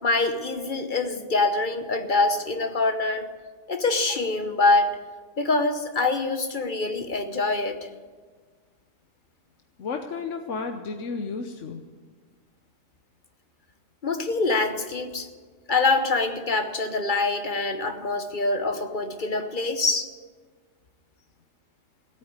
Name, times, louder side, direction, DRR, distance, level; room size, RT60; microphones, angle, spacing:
voice 1, 0.0-3.3 3.7-4.9 5.4-7.9 14.0-15.3 15.7-20.1, left 3 dB, 45° left, 8 dB, 1.1 m, -25 dB
voice 2, 9.8-11.8, left 4 dB, 75° left, 5 dB, 1.2 m, -32 dB
17.0 x 8.9 x 9.6 m, 1.5 s
omnidirectional pair, 1.3 m